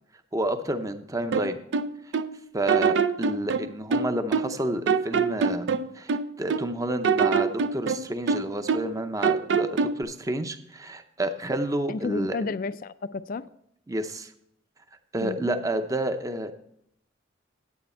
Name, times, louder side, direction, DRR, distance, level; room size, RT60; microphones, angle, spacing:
voice 1, 0.3-1.6 2.5-5.7 5.9-12.4 13.9-14.3 15.1-16.5, right 1 dB, 20° right, 0.7 m, -30 dB
sound 1, 1.3-2.3 2.7-4.6 4.9-6.7 7.0-9.0 9.2-10.0, right 5 dB, 70° right, 0.5 m, -25 dB
voice 2, 11.9-13.4 15.2-15.4, left 4 dB, 50° left, 0.4 m, -31 dB
9.4 x 8.9 x 4.3 m
head